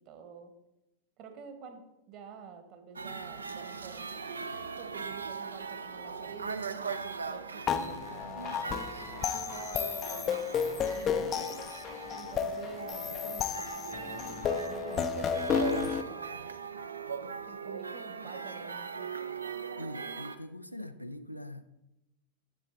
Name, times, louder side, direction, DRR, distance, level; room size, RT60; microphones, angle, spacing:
voice 1, 0.0-0.5 1.2-7.0 7.2-15.7 16.1-16.6 17.5-19.1, right 5 dB, 40° right, 7 dB, 1.1 m, -49 dB
sound 1, 3.0-20.4, right 5 dB, 75° right, 0.5 m, -40 dB
sound 2, 7.7-16.0, left 7 dB, 30° left, 0.5 m, -33 dB
voice 2, 19.8-21.6, left 1 dB, 90° left, 10 dB, 0.4 m, -42 dB
8.2 x 7.1 x 3.8 m, 0.93 s
figure-of-eight pair, 90°, 0 cm